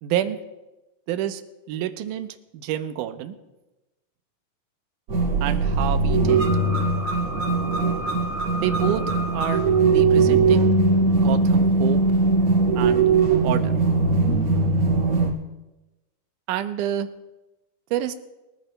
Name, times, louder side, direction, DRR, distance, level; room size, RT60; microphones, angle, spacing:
voice 1, 0.0-0.4 1.1-1.4 1.7-3.4 5.4-6.5 8.6-9.0 9.3-9.6 9.9-10.7 11.2-12.0 12.8-13.1 13.4-13.7 16.5-17.1 17.9-18.1, right 11 dB, 75° right, 8 dB, 2.1 m, -28 dB
sound 1, 5.1-15.3, right 3 dB, 45° right, 2.8 m, -20 dB
23.0 x 14.5 x 2.2 m, 1.0 s
omnidirectional pair, 4.0 m